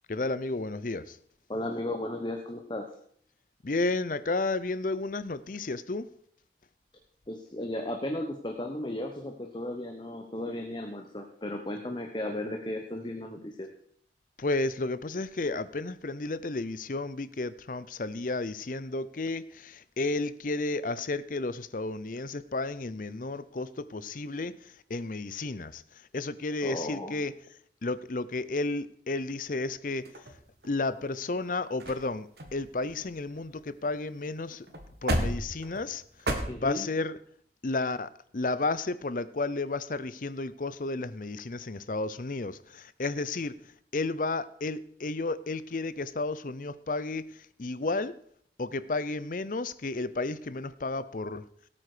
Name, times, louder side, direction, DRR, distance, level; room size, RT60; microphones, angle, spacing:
voice 1, 0.1-1.2 3.6-6.1 14.4-27.3 27.8-30.1 30.6-34.7 35.0-36.0 36.3-37.2 37.6-43.6 43.9-48.2 48.6-51.5, left 3 dB, 50° left, 16 dB, 0.6 m, -32 dB
voice 2, 1.5-2.9 7.3-13.7 26.6-27.2 36.5-36.8, left 1 dB, 25° left, 3 dB, 1.1 m, -35 dB
sound 1, 30.0-30.9 31.5-31.6 31.8-32.1 32.4-33.9 34.2-34.3 34.7-36.3, right 1 dB, 65° right, 2.1 m, -34 dB
17.5 x 8.6 x 5.0 m, 0.62 s
head